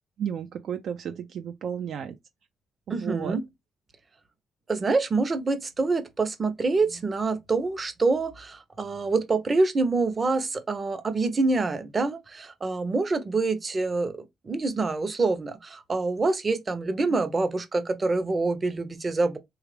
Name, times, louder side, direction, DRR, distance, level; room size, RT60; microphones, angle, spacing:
voice 1, 0.2-2.2 2.9-3.4 17.1-17.2, right 8 dB, 65° right, 0.4 m, -33 dB
voice 2, 2.9-3.4 4.7-19.4, right 3 dB, 35° right, 0.7 m, -26 dB
3.3 x 2.4 x 3.2 m
supercardioid pair, 65°, 0 cm